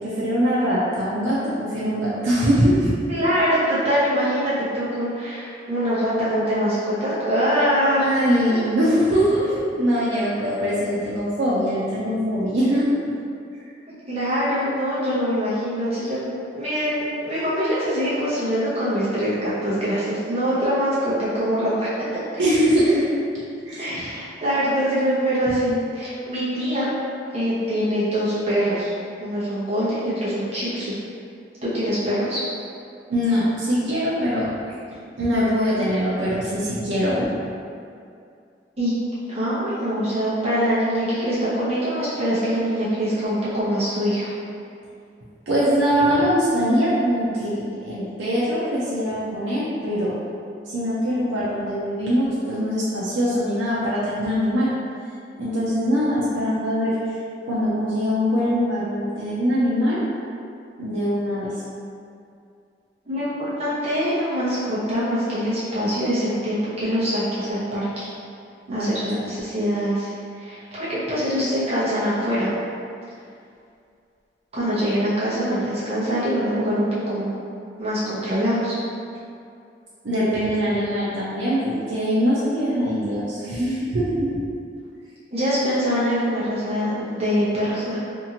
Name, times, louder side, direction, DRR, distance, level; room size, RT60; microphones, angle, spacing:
voice 1, 0.0-3.0 8.0-12.9 13.6-13.7 22.4-23.2 23.6-24.2 33.1-34.5 35.2-37.4 45.5-50.2 50.7-54.7 55.4-57.0 57.4-60.0 60.8-61.5 68.7-69.3 80.0-84.4, equal, 90° right, -8 dB, 0.5 m, -22 dB
voice 2, 3.1-8.1 8.5-8.6 14.1-16.2 16.5-21.9 23.8-26.9 27.3-28.9 29.2-31.0 31.6-32.4 38.8-38.9 39.3-44.3 63.1-68.1 68.7-72.5 74.5-77.3 77.8-78.7 85.3-88.0, equal, 35° right, -12 dB, 0.8 m, -23 dB
2.7 x 2.5 x 2.8 m, 2.4 s
head